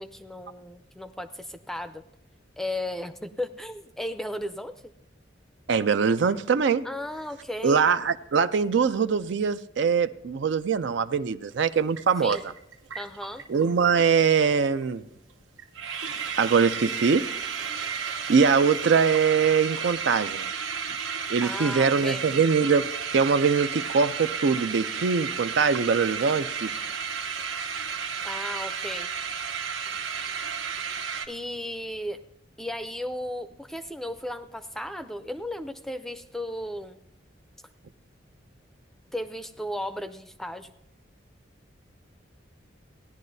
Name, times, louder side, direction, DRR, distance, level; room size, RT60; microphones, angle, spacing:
voice 1, 0.0-2.0 2.6-4.9 6.8-7.8 12.2-12.4 13.0-13.4 21.4-22.3 28.2-29.1 30.9-32.2 32.6-37.0 39.1-40.7, left 1 dB, ahead, 0.4 m, -35 dB
voice 2, 5.7-6.8 7.6-12.4 13.5-15.1 16.4-17.2 18.3-20.5 21.3-22.9 23.1-26.7, right 5 dB, 65° right, 0.4 m, -22 dB
sound 1, 11.6-11.7 12.0-13.7 14.0-14.1 14.3-14.6 14.8-14.9 15.3-15.4 15.6-31.3, right 6 dB, 85° right, 1.0 m, -33 dB
18.0 x 10.5 x 2.7 m
head